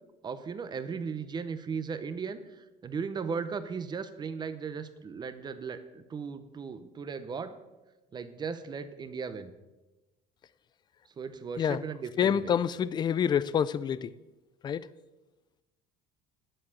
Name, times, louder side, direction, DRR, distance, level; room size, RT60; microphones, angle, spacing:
voice 1, 0.2-7.6 8.1-9.5 11.2-12.5, right 5 dB, 20° right, 0.8 m, -37 dB
voice 2, 12.2-14.1 14.6-14.9, left 8 dB, 20° left, 0.3 m, -27 dB
9.5 x 7.7 x 8.4 m
cardioid pair, 160°, 20 cm